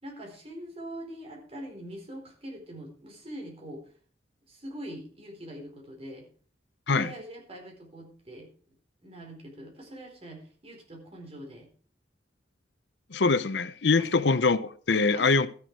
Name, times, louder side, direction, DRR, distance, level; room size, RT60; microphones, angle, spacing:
voice 1, 0.0-3.8 4.5-6.3 6.9-8.5 9.0-11.7 13.9-14.2 14.9-15.5, right 1 dB, 35° right, 4.2 m, -43 dB
voice 2, 13.1-15.5, left 4 dB, 70° left, 0.7 m, -23 dB
13.0 x 10.5 x 4.7 m
head